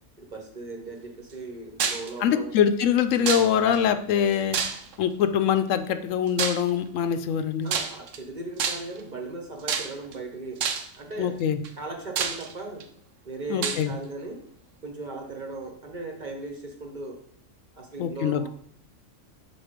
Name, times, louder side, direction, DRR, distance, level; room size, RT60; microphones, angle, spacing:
voice 1, 0.2-2.5 7.6-10.7 11.0-11.4 11.8-12.9 13.2-14.4 14.8-17.2 17.7-18.5, right 2 dB, 40° right, 2 dB, 1.0 m, -37 dB
sound 1, 1.8-2.1 3.3-3.8 4.5-5.1 6.4-6.7 7.7-8.2 8.6-9.0 9.7-10.1 10.6-11.0 11.6-11.7 12.2-12.8 13.6-13.8, right 6 dB, 75° right, 1.1 m, -28 dB
voice 2, 2.2-4.6 5.0-7.7 11.2-11.6 13.5-13.9 18.0-18.5, left 8 dB, 80° left, 10 dB, 0.9 m, -23 dB
6.1 x 4.2 x 5.1 m, 0.64 s
omnidirectional pair, 1.3 m